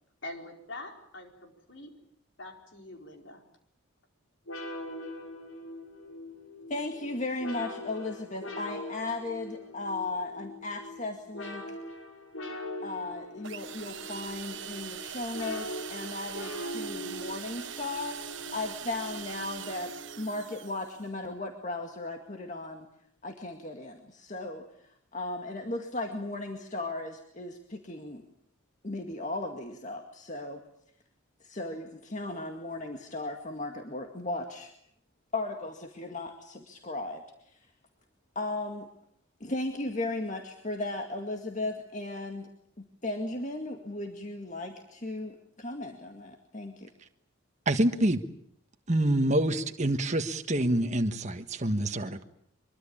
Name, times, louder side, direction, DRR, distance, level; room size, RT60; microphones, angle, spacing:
voice 1, 0.2-1.9 2.4-3.4, left 2 dB, 60° left, 3 dB, 4.7 m, -44 dB
sound 1, 4.5-20.7, left 1 dB, 85° left, 6.1 m, -42 dB
voice 2, 6.7-11.8 12.8-18.2 18.5-19.9 20.2-22.9 23.2-24.7 25.1-28.2 28.8-30.6 31.4-34.7 35.3-37.6 38.4-38.9 39.4-42.5 42.8-46.9, left 2 dB, 35° left, 4 dB, 2.1 m, -36 dB
sound 2, 13.4-21.1, right 9 dB, 60° right, 1.3 m, -42 dB
voice 3, 47.6-48.2 48.9-52.2, right 1 dB, 35° right, 6 dB, 1.5 m, -26 dB
24.0 x 23.5 x 8.7 m, 0.71 s
head